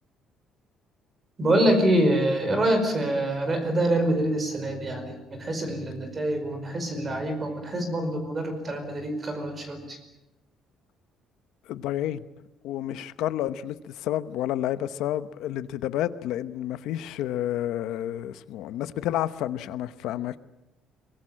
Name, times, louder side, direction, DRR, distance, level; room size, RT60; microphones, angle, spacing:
voice 1, 1.4-10.0, right 1 dB, 20° right, 7 dB, 5.0 m, -25 dB
voice 2, 11.7-12.2 12.6-20.4, left 12 dB, 75° left, 13 dB, 0.9 m, -30 dB
23.5 x 21.0 x 8.8 m, 0.93 s
cardioid pair, 175°, 0 cm